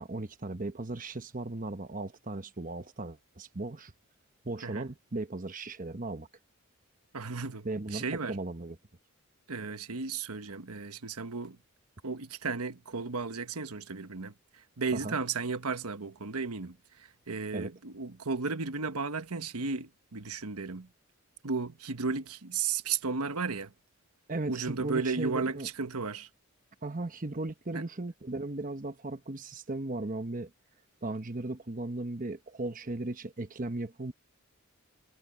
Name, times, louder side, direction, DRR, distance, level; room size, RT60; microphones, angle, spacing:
voice 1, 0.0-3.9 4.4-6.3 7.6-8.8 15.0-15.2 17.5-17.7 24.3-25.7 26.8-30.5 31.0-34.1, right 2 dB, 35° right, 1.1 m, -37 dB
voice 2, 7.1-7.7 7.9-8.4 9.5-11.6 12.0-14.3 14.8-16.8 17.3-20.9 21.4-23.7 24.5-26.3 27.7-27.8, right 4 dB, 90° right, 1.2 m, -34 dB
head